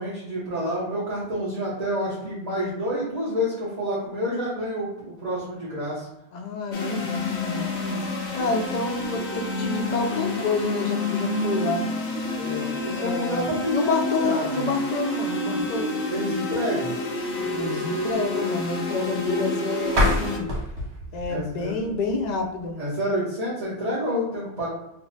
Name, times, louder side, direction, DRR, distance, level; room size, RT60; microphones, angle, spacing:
voice 1, 0.0-6.1 12.4-14.7 16.1-17.0 21.3-21.8 22.8-24.7, equal, 40° right, -8 dB, 0.9 m, -29 dB
voice 2, 6.3-8.0 8.3-11.9 12.9-15.9 17.5-20.5 21.1-23.0, left 3 dB, 55° left, 3 dB, 0.5 m, -28 dB
sound 1, 6.7-20.4, left 2 dB, 80° left, 0.9 m, -29 dB
sound 2, 19.8-22.7, left 1 dB, 80° right, 1.4 m, -27 dB
3.3 x 2.0 x 4.0 m, 0.91 s
omnidirectional pair, 1.1 m